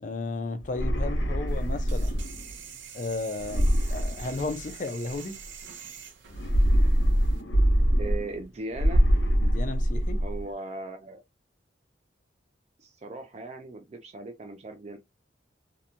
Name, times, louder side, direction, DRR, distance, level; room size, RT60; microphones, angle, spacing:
voice 1, 0.0-2.2 2.9-5.4 9.4-10.2, left 3 dB, 45° left, 0.4 m, -34 dB
sound 1, 0.6-2.5 3.4-4.9 6.3-8.4 8.7-10.4, equal, 85° left, 0.8 m, -24 dB
sound 2, 1.5-7.4, right 7 dB, 80° right, 0.6 m, -46 dB
voice 2, 8.0-9.1 10.2-11.2 12.8-15.0, right 2 dB, 35° right, 0.3 m, -38 dB
2.9 x 2.2 x 2.4 m
head